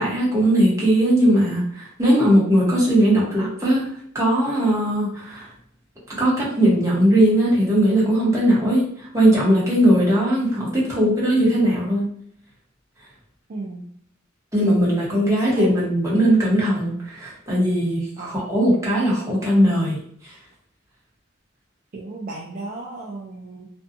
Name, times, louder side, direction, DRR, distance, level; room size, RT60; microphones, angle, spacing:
voice 1, 0.0-3.9 4.1-5.5 6.2-12.1 14.5-20.0 20.2-20.3, right 1 dB, 15° right, -6 dB, 0.9 m, -19 dB
voice 2, 13.5-13.8 15.1-15.7 18.2-18.5 21.9-23.7, right 2 dB, 45° right, -2 dB, 0.4 m, -35 dB
2.5 x 2.3 x 2.5 m, 0.63 s
head